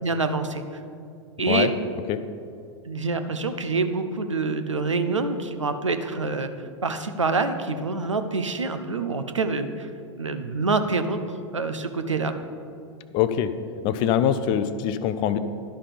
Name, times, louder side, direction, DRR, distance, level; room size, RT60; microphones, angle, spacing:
voice 1, 0.0-0.6 1.4-1.7 2.9-6.5 6.8-9.9 10.2-12.3, right 3 dB, 80° right, 8 dB, 0.7 m, -26 dB
voice 2, 13.1-13.5 13.8-15.4, left 10 dB, 35° left, 12 dB, 0.4 m, -23 dB
11.5 x 5.6 x 5.0 m, 2.4 s
figure-of-eight pair, 95°, 15 cm